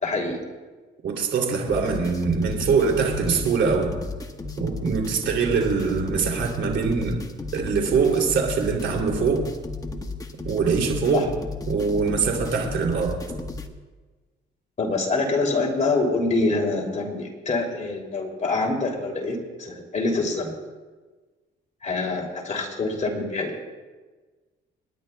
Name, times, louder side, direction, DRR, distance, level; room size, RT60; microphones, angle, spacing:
voice 1, 0.0-0.4 11.1-11.3 14.8-20.5 21.8-23.7, left 3 dB, 35° left, 0 dB, 2.8 m, -25 dB
voice 2, 1.0-3.9 4.6-7.2 7.5-9.4 10.4-11.3 11.7-13.2, right 5 dB, 65° right, 1 dB, 2.9 m, -23 dB
sound 1, 1.7-13.7, left 3 dB, 20° left, 1.2 m, -34 dB
29.5 x 10.5 x 2.3 m, 1.3 s
cardioid pair, 90°, 20 cm